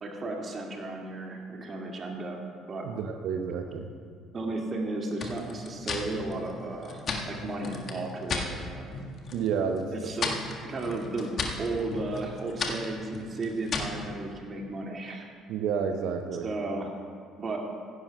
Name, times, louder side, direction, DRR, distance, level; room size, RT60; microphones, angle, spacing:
voice 1, 0.0-2.4 2.7-2.8 4.3-8.9 9.9-10.3 10.7-15.3 16.4-16.9 17.4-17.6, right 2 dB, 35° right, 0 dB, 2.0 m, -34 dB
voice 2, 2.8-3.9 9.3-10.1 15.5-16.5, right 6 dB, 60° right, 5 dB, 0.8 m, -30 dB
sound 1, 5.2-8.5 8.9-9.5 9.8-14.0, left 4 dB, 45° left, 1.6 m, -35 dB
16.5 x 16.0 x 2.3 m, 2.1 s
figure-of-eight pair, 50°, 0 cm